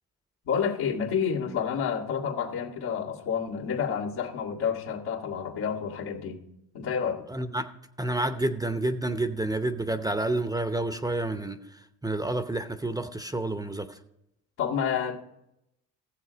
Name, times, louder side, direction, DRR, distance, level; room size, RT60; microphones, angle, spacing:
voice 1, 0.5-6.4 6.7-7.2 14.6-15.2, left 7 dB, 75° left, 2.1 m, -29 dB
voice 2, 7.3-7.7 8.0-11.6 12.0-14.0, right 2 dB, 10° right, 0.7 m, -29 dB
15.0 x 7.5 x 5.1 m
cardioid pair, 90°, 38 cm